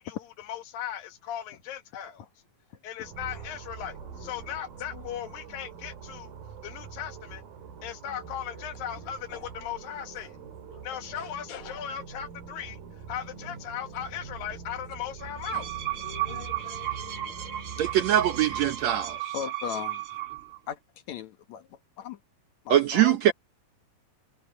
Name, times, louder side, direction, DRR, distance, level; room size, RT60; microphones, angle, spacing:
voice 1, 0.0-2.3 2.8-6.3 6.6-7.4 7.8-10.4 10.8-12.8 13.1-15.7, left 10 dB, 90° left, 3.3 m, -37 dB
sound 1, 3.0-19.2, right 6 dB, 85° right, 4.3 m, -44 dB
voice 2, 10.7-11.8 15.5-15.6 16.0-17.6 17.8-17.9 19.3-20.0 20.7-20.8 21.1-22.2 22.7-23.3, left 8 dB, 60° left, 2.3 m, -40 dB
sound 2, 15.2-20.6, right 13 dB, 50° right, 1.9 m, -34 dB
voice 3, 17.8-19.3 22.7-23.3, right 11 dB, 70° right, 1.8 m, -23 dB
omnidirectional pair, 3.9 m